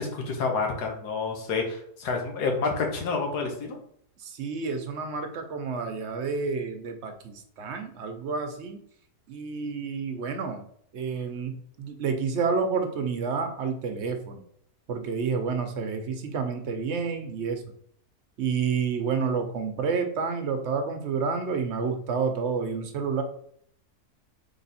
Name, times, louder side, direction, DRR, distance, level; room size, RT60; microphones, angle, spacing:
voice 1, 0.0-3.8, left 4 dB, 85° left, 2 dB, 1.6 m, -29 dB
voice 2, 4.2-8.8 9.3-10.7 10.9-14.4 14.9-17.6 18.4-23.2, right 5 dB, 60° right, 6 dB, 0.8 m, -29 dB
3.9 x 3.3 x 4.1 m, 0.64 s
omnidirectional pair, 1.7 m